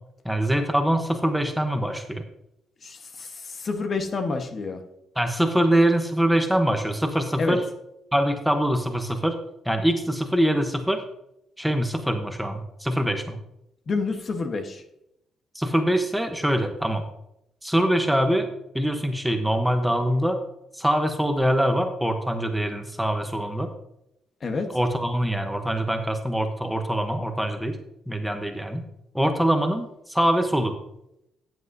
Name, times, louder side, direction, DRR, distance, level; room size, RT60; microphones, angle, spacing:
voice 1, 0.2-2.2 5.2-7.6 8.1-9.4 9.6-11.0 11.6-13.4 15.5-17.0 17.6-18.5 18.7-20.4 20.7-23.7 24.7-27.8 28.1-28.8 29.1-30.7, right 1 dB, ahead, 5 dB, 1.0 m, -24 dB
voice 2, 2.8-4.8 7.4-7.6 13.9-14.8 24.4-24.7, left 4 dB, 45° left, 6 dB, 1.3 m, -28 dB
13.0 x 8.0 x 2.7 m, 0.80 s
cardioid pair, 90°, 0 cm